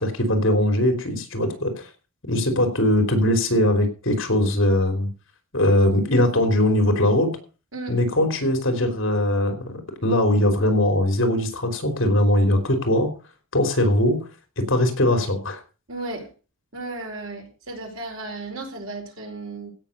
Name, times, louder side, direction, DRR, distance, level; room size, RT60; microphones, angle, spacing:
voice 1, 0.0-1.9 2.2-5.1 5.5-7.3 7.9-13.1 13.5-14.2 14.6-15.6, left 1 dB, 60° left, 7 dB, 3.5 m, -21 dB
voice 2, 15.9-16.3 16.7-19.7, right 2 dB, 65° right, 2 dB, 4.6 m, -34 dB
16.0 x 6.6 x 6.7 m, 0.36 s
head